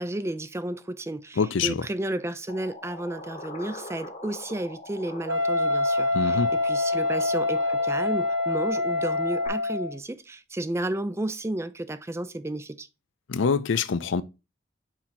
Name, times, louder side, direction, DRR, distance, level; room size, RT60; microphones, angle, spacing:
voice 1, 0.0-12.9, right 1 dB, 15° right, 0.4 m, -32 dB
voice 2, 1.4-1.8 6.1-6.5 13.3-14.2, left 5 dB, 75° left, 0.5 m, -25 dB
sound 1, 2.5-9.5, left 2 dB, 40° left, 1.1 m, -42 dB
Wind instrument woodwind instrument, 5.3-10.0, left 2 dB, 90° right, 1.2 m, -25 dB
6.3 x 4.4 x 4.1 m
head